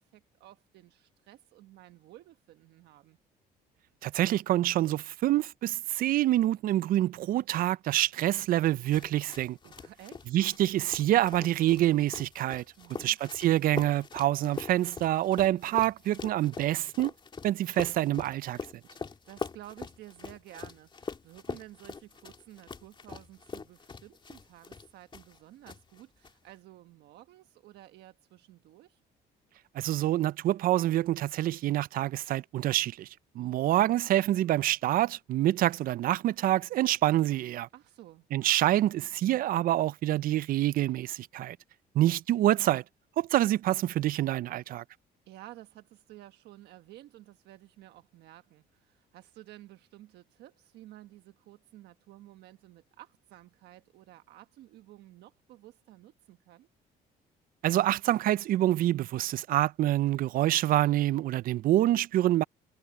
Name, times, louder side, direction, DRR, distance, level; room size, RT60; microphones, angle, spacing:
voice 1, 0.0-3.2 9.8-10.3 12.8-13.2 19.0-29.0 37.7-38.3 45.3-56.7, right 15 dB, 80° right, 1.3 m, -52 dB
voice 2, 4.0-9.6 10.3-12.6 13.0-17.1 17.4-18.6 29.7-33.1 33.4-37.7 38.3-41.6 41.9-42.8 43.2-44.8 57.6-62.4, right 14 dB, 60° right, 0.4 m, -26 dB
sound 1, 8.6-25.4 25.7-26.3, left 5 dB, 30° left, 2.8 m, -43 dB
cardioid pair, 110°, 17 cm